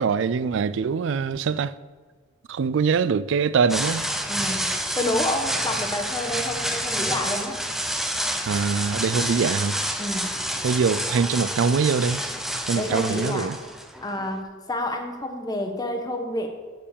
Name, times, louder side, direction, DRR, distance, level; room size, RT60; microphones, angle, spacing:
voice 1, 0.0-1.7 2.5-4.1 8.5-9.8 10.6-12.2 12.7-13.6, right 5 dB, 65° right, 0.4 m, -23 dB
sound 1, 3.7-14.4, equal, ahead, 0.7 m, -29 dB
voice 2, 4.3-4.7 5.0-7.6 10.0-10.4 12.7-13.5 14.0-16.5, left 1 dB, 20° left, 1.2 m, -29 dB
12.5 x 4.6 x 7.1 m
head